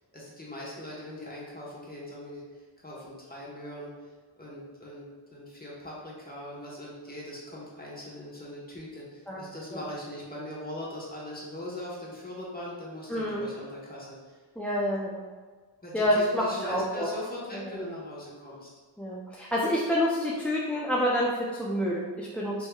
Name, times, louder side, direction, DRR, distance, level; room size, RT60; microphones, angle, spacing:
voice 1, 0.1-2.4 2.8-3.9 4.4-14.4 15.8-18.7, left 1 dB, 20° left, -5 dB, 1.3 m, -40 dB
voice 2, 13.1-13.5 14.6-15.3 15.9-17.1 17.5-17.8 19.0-22.7, equal, 5° left, -5 dB, 0.4 m, -28 dB
5.4 x 3.1 x 2.3 m, 1.4 s
wide cardioid pair, 70°, 49 cm